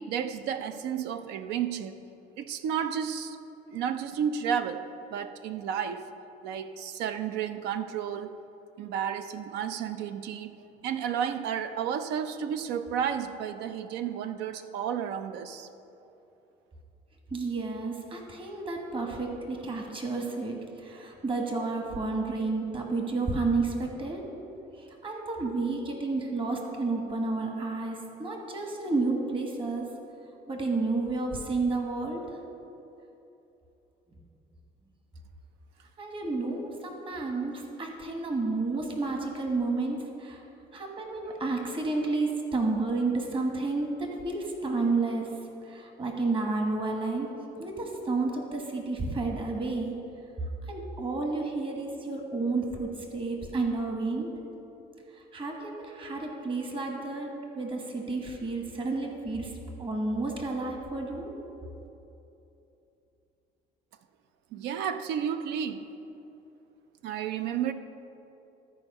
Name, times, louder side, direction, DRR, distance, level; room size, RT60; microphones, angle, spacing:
voice 1, 0.0-2.0 2.4-3.4 3.7-4.8 5.1-6.1 6.4-8.4 8.8-10.6 10.8-15.7 36.3-36.4 64.5-65.9 67.0-67.7, right 8 dB, 85° right, 10 dB, 0.5 m, -32 dB
voice 2, 17.3-24.3 24.8-29.9 30.5-32.4 36.0-40.4 40.7-47.3 47.6-50.0 50.7-54.4 55.1-61.4, right 3 dB, 30° right, 2 dB, 1.3 m, -31 dB
13.5 x 4.5 x 5.3 m, 2.9 s
cardioid pair, 110°, 17 cm